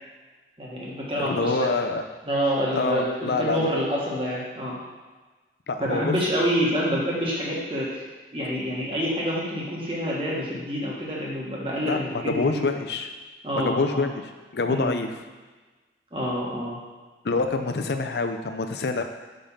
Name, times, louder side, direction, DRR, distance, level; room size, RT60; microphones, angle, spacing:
voice 1, 0.6-1.7 2.2-4.7 5.8-8.0 8.3-12.7 13.4-14.1 14.7-14.9 16.1-16.8, equal, 30° right, -4 dB, 1.6 m, -27 dB
voice 2, 1.2-2.0 2.7-3.7 5.7-6.2 11.8-13.1 13.6-14.1 14.5-15.2 17.2-19.0, left 3 dB, 70° left, 6 dB, 0.5 m, -26 dB
5.3 x 5.2 x 5.7 m, 1.3 s
head